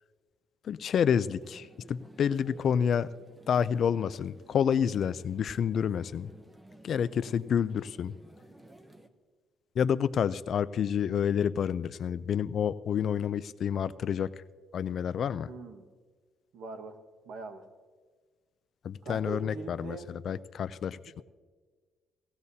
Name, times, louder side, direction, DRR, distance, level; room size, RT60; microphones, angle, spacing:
voice 1, 0.6-3.1 3.5-6.3 6.8-8.1 9.8-14.3 14.7-15.5 18.8-21.2, left 8 dB, 45° left, 15 dB, 0.3 m, -29 dB
sound 1, 1.2-9.1, right 1 dB, 10° right, 0.6 m, -54 dB
voice 2, 15.5-15.9 16.5-16.9 17.2-17.6 19.0-20.1 20.9-21.2, right 3 dB, 65° right, 6 dB, 1.3 m, -42 dB
17.5 x 17.5 x 2.7 m, 1.5 s
cardioid pair, 165°, 0 cm